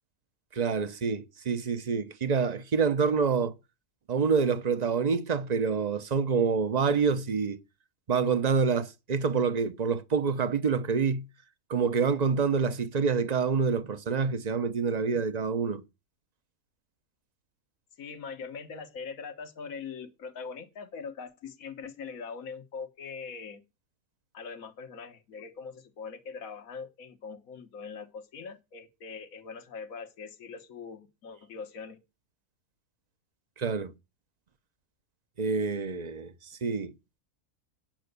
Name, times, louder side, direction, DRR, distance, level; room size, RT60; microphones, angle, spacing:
voice 1, 0.5-3.5 4.1-7.6 8.1-11.3 11.7-15.8 33.6-33.9 35.4-36.9, right 5 dB, 35° right, 0.9 m, -27 dB
voice 2, 18.0-23.6 24.3-32.0, left 5 dB, 75° left, 1.7 m, -42 dB
9.0 x 8.9 x 6.7 m
omnidirectional pair, 1.5 m